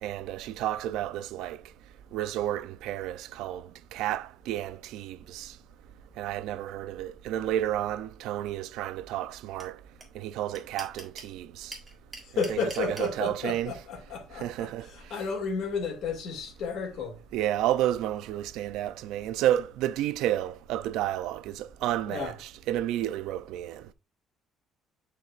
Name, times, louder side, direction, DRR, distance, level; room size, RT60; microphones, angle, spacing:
voice 1, 0.0-1.6 2.1-3.6 3.9-5.5 6.2-9.8 10.2-11.8 12.5-13.7 14.4-14.9 17.3-23.8, right 12 dB, 90° right, 0.4 m, -31 dB
sound 1, 9.6-9.7 10.0-10.1 10.3-11.3 11.7-13.1, right 2 dB, 10° right, 1.6 m, -41 dB
voice 2, 12.2-17.2 22.1-22.3, left 5 dB, 60° left, 2.3 m, -33 dB
9.8 x 4.6 x 2.4 m
cardioid pair, 160°, 0 cm